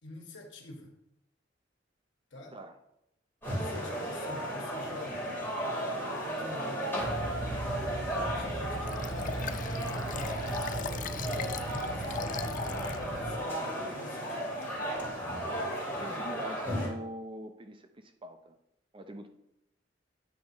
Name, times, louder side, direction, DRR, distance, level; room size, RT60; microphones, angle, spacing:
voice 1, 0.0-0.9 2.3-2.6 3.4-5.4 6.2-7.1 8.1-9.5 10.0-14.6 16.3-16.5, left 1 dB, 75° left, 2 dB, 1.6 m, -47 dB
sound 1, 3.4-16.9, equal, 10° left, 3.0 m, -35 dB
sound 2, 7.0-13.3, right 1 dB, 50° right, 3.4 m, -38 dB
Liquid, 8.9-13.0 13.5-13.6, left 7 dB, 45° left, 0.4 m, -40 dB
voice 2, 16.0-18.5 18.9-19.3, right 1 dB, 30° right, 7 dB, 0.6 m, -43 dB
9.3 x 4.1 x 4.8 m, 0.82 s
head